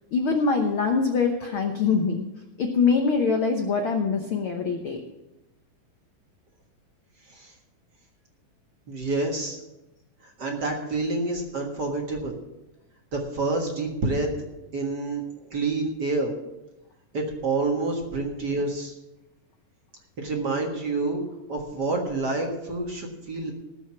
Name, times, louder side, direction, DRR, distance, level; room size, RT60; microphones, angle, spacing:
voice 1, 0.1-2.3 2.6-5.0, left 5 dB, 85° left, 4 dB, 1.1 m, -23 dB
voice 2, 8.9-9.6 10.4-12.3 13.1-14.3 14.7-15.2 15.5-16.3 17.1-18.9 20.2-21.2 21.5-23.5, right 3 dB, 40° right, 1 dB, 1.6 m, -28 dB
19.0 x 6.4 x 5.9 m, 0.98 s
omnidirectional pair, 3.8 m